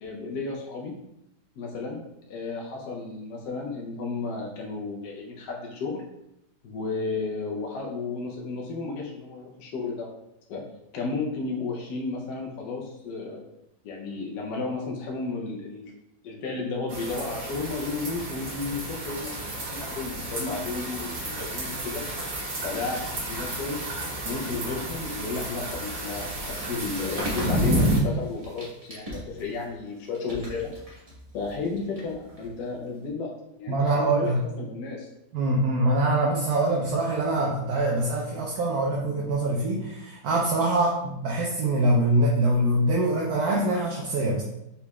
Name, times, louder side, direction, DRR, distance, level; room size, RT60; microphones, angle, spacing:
voice 1, 0.0-0.9 1.6-2.0 2.3-6.0 6.6-10.1 10.5-10.6 10.9-13.4 13.8-15.9 16.2-22.3 22.6-23.8 24.2-30.7 31.3-33.3 33.6-34.3 34.6-35.1, left 4 dB, 70° left, -1 dB, 1.2 m, -33 dB
sound 1, 16.9-28.0, right 1 dB, 50° right, 1.4 m, -31 dB
sound 2, 24.4-33.1, equal, 25° right, 1.1 m, -41 dB
voice 2, 33.7-34.4 35.3-44.4, right 1 dB, 65° right, -3 dB, 1.1 m, -24 dB
4.6 x 4.0 x 2.3 m, 0.83 s
omnidirectional pair, 1.9 m